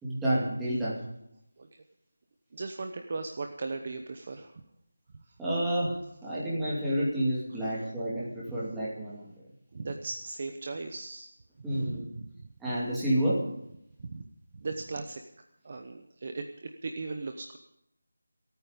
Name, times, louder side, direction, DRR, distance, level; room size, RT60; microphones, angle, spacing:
voice 1, 0.0-1.0 5.4-9.3 11.6-12.1 12.6-13.5, right 1 dB, 5° right, -9 dB, 2.5 m, -29 dB
voice 2, 2.5-4.6 5.3-5.4 7.6-7.9 9.7-11.3 11.6-12.5 14.0-14.3 14.5-15.2 15.6-17.6, right 3 dB, 30° right, 6 dB, 0.9 m, -38 dB
26.5 x 9.2 x 5.2 m, 0.79 s
figure-of-eight pair, 175°, 0 cm